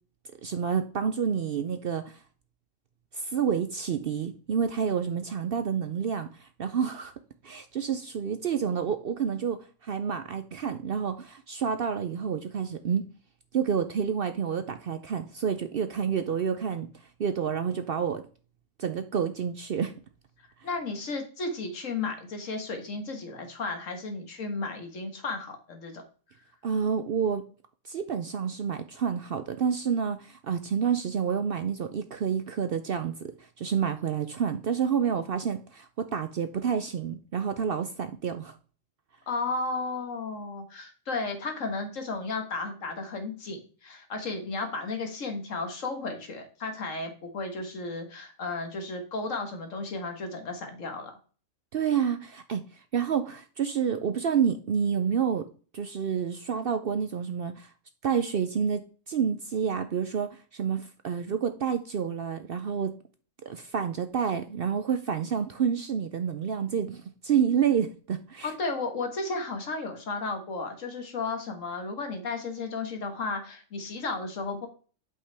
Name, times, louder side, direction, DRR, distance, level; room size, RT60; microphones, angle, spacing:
voice 1, 0.4-2.2 3.1-7.1 7.4-13.1 13.5-16.9 17.2-18.2 18.8-19.9 26.6-27.4 27.9-33.3 33.6-38.5 51.7-55.5 55.7-57.7 58.0-62.9 63.5-68.5, right 7 dB, 60° right, 9 dB, 0.6 m, -29 dB
voice 2, 20.6-26.0 39.3-51.1 68.4-74.7, left 3 dB, 70° left, 5 dB, 1.8 m, -34 dB
8.4 x 5.6 x 3.4 m, 0.39 s
omnidirectional pair, 1.4 m